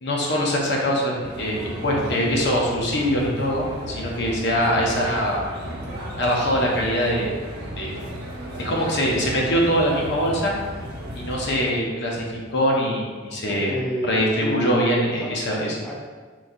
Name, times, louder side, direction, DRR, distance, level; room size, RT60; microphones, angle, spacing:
voice 1, 0.0-5.4 6.2-7.3 7.8-8.1 8.6-10.5 11.1-13.7 14.1-15.8, equal, 65° left, -2 dB, 0.7 m, -23 dB
sound 1, 1.2-11.7, equal, 55° right, 0.9 m, -35 dB
voice 2, 13.5-14.7 15.2-16.0, equal, 5° left, -4 dB, 0.4 m, -31 dB
3.8 x 3.1 x 2.6 m, 1.5 s
head